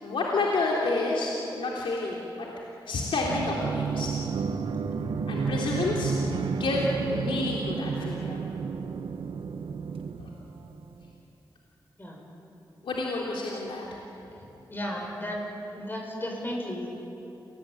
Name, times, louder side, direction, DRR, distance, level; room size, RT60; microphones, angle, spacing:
voice 1, 0.0-2.5 2.9-4.1 5.3-6.1 6.5-8.4 10.2-10.3 12.8-13.8, left 3 dB, 85° left, -3 dB, 3.5 m, -29 dB
sound 1, 3.3-10.8, right 5 dB, 85° right, 1.5 m, -31 dB
voice 2, 14.7-15.4 15.7-16.9, equal, 25° left, 0 dB, 7.5 m, -34 dB
28.5 x 19.5 x 9.7 m, 3.0 s
cardioid pair, 75°, 9 cm